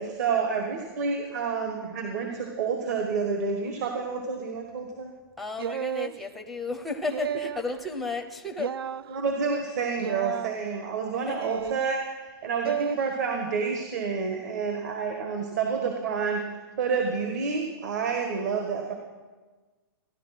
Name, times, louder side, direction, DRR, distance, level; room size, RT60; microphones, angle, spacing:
voice 1, 0.0-5.1 9.1-18.9, right 5 dB, 45° right, 3 dB, 1.5 m, -29 dB
voice 2, 5.4-8.7 11.3-11.4, left 3 dB, ahead, 4 dB, 0.6 m, -33 dB
sound 1, 5.6-6.2 7.1-7.7 8.6-9.0 10.0-10.5 11.4-11.9 12.6-13.0, right 10 dB, 70° right, 0.4 m, -32 dB
15.0 x 11.0 x 5.9 m, 1.3 s
hypercardioid pair, 175°, 13 cm